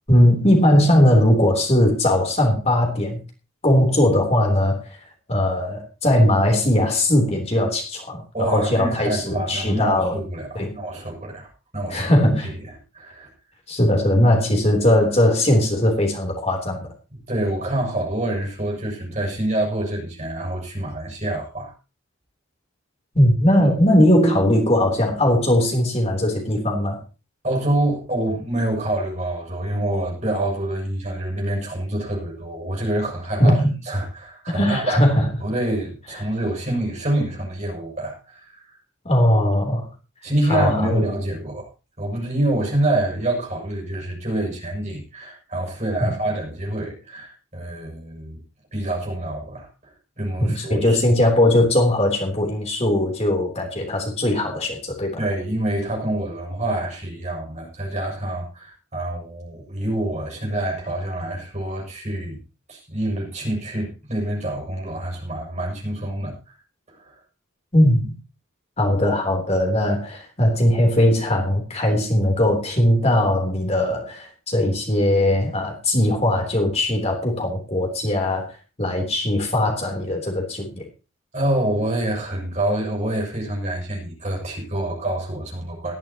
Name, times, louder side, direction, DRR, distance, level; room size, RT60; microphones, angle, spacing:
voice 1, 0.1-3.2 3.6-5.0 5.3-10.2 10.5-10.7 11.9-12.5 13.7-16.9 23.1-27.0 33.4-33.7 34.5-35.3 39.0-39.9 40.4-41.0 46.0-46.1 50.4-55.1 67.7-68.1 68.8-78.5 78.8-80.8, left 1 dB, 30° left, 2 dB, 3.5 m, -19 dB
voice 2, 8.3-12.1 12.4-12.5 12.9-13.3 17.3-21.7 27.4-33.6 33.8-35.0 35.4-38.8 40.2-41.7 42.0-48.4 48.7-51.0 55.2-62.4 62.7-66.6 66.9-67.2 81.3-85.9, right 1 dB, 35° right, -1 dB, 7.1 m, -26 dB
18.5 x 13.5 x 3.0 m, 0.31 s
head